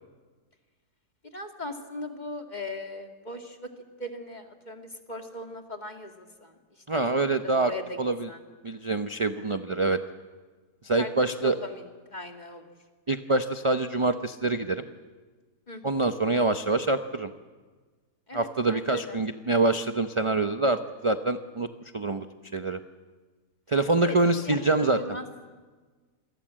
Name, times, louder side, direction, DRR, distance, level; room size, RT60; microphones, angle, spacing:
voice 1, 1.3-3.7 4.0-6.5 6.9-7.0 7.4-8.0 8.3-8.4 11.0-12.6 15.7-16.0 18.3-19.2 24.0-24.2 24.5-25.3, left 1 dB, 25° left, 4 dB, 2.3 m, -39 dB
voice 2, 6.9-7.7 8.0-8.3 8.6-10.0 10.8-11.5 13.1-14.8 15.8-17.3 18.3-21.7 21.9-22.2 22.5-22.8 23.7-25.0, right 2 dB, 30° right, 8 dB, 0.6 m, -25 dB
28.0 x 22.5 x 7.6 m, 1.4 s
omnidirectional pair, 1.8 m